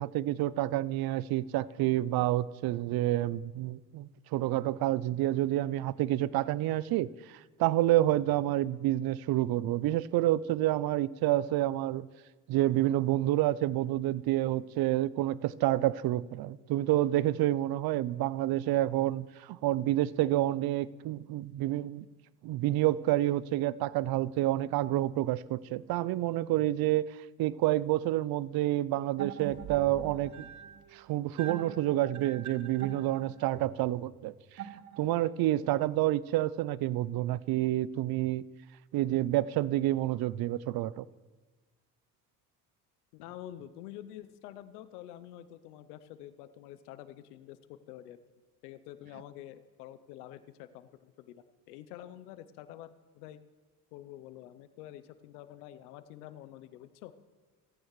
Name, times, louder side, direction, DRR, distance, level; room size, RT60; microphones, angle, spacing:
voice 1, 0.0-12.1 12.5-22.1 22.4-30.5 30.9-34.6 35.0-38.4 38.9-41.0, right 14 dB, 55° right, 0.6 m, -29 dB
sound 1, 29.2-35.4, right 9 dB, 40° right, 1.0 m, -44 dB
voice 2, 43.1-48.2 48.6-53.4 53.9-57.1, left 12 dB, 85° left, 0.7 m, -48 dB
28.0 x 9.4 x 3.2 m
hypercardioid pair, 70°, 45 cm